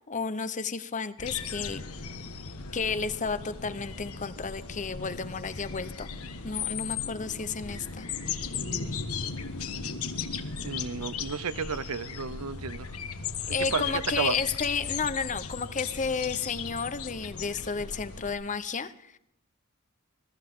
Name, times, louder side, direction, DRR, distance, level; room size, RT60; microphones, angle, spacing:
voice 1, 0.1-1.8 2.7-6.1 6.4-8.1 13.5-19.2, left 5 dB, 35° left, 0.9 m, -32 dB
sound 1, 1.2-18.3, left 6 dB, 75° left, 1.5 m, -36 dB
voice 2, 10.6-12.9 13.5-14.4, right 5 dB, 80° right, 0.8 m, -32 dB
21.5 x 13.5 x 3.7 m
head